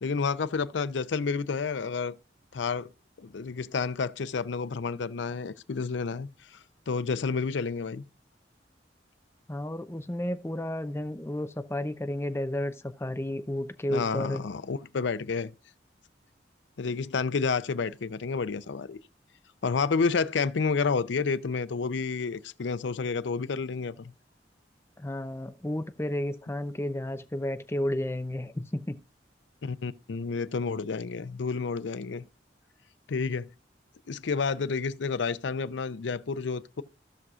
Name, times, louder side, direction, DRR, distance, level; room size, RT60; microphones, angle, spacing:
voice 1, 0.0-2.2 2.5-2.9 3.2-6.6 6.9-8.0 13.9-15.5 16.8-19.0 19.6-24.1 29.6-32.2 33.1-33.5 34.1-36.8, left 5 dB, 80° left, 0.5 m, -30 dB
voice 2, 9.5-14.5 25.0-29.0, left 1 dB, 15° left, 0.6 m, -32 dB
16.0 x 6.2 x 2.4 m
head